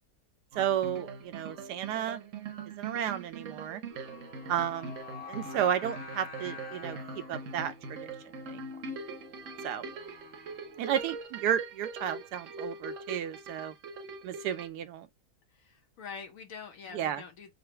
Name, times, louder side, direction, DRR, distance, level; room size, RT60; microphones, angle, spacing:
sound 1, 0.5-14.7, right 3 dB, 60° right, 1.0 m, -42 dB
voice 1, 0.5-2.2 2.8-3.8 4.5-4.9 5.3-7.0 7.3-8.1 8.5-8.6 9.6-9.8 10.8-13.7 14.2-15.1 16.9-17.2, right 9 dB, 85° right, 1.2 m, -32 dB
Singing, 3.9-11.0, left 3 dB, 40° left, 1.7 m, -48 dB
voice 2, 15.6-17.5, left 6 dB, 60° left, 1.2 m, -45 dB
3.9 x 2.0 x 4.3 m
omnidirectional pair, 1.7 m